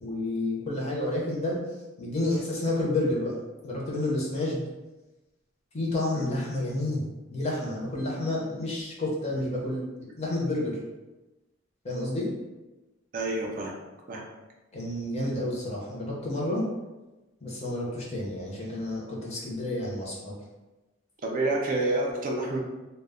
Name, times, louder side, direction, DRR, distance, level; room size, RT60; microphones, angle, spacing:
voice 1, 0.0-1.6 2.0-3.3 3.6-4.6 5.7-7.0 7.3-9.8 10.2-10.8 11.8-12.3 14.7-16.7 17.4-20.4, left 1 dB, 35° left, -4 dB, 0.6 m, -30 dB
voice 2, 13.1-13.7 14.1-14.2 21.2-22.6, right 2 dB, 40° right, -1 dB, 0.4 m, -28 dB
2.1 x 2.0 x 3.5 m, 1.1 s
head